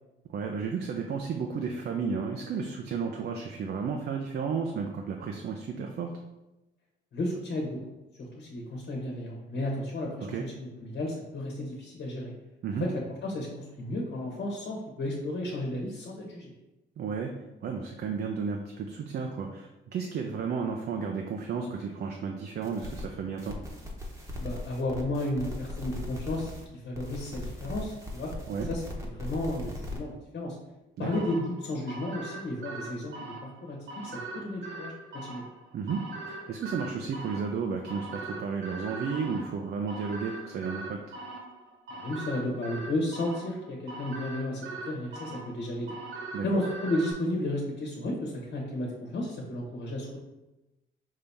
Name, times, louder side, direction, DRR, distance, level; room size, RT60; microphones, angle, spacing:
voice 1, 0.3-6.1 10.3-10.4 12.6-12.9 17.0-17.3 17.6-23.6 28.5-28.7 31.0-31.1 35.7-36.0 36.3-41.0 46.3-46.6, right 5 dB, 55° right, 2 dB, 0.5 m, -33 dB
voice 2, 7.1-7.8 8.2-12.3 12.8-16.5 24.4-28.3 28.7-30.6 31.0-35.4 41.9-45.9 46.4-50.2, left 1 dB, 60° left, -2 dB, 1.2 m, -33 dB
sound 1, 22.6-23.0 23.4-26.6 26.9-30.0, left 1 dB, 15° right, 1.0 m, -39 dB
sound 2, 31.1-47.1, right 2 dB, 70° right, 1.0 m, -41 dB
5.4 x 2.8 x 3.4 m, 1.0 s
cardioid pair, 90°, 20 cm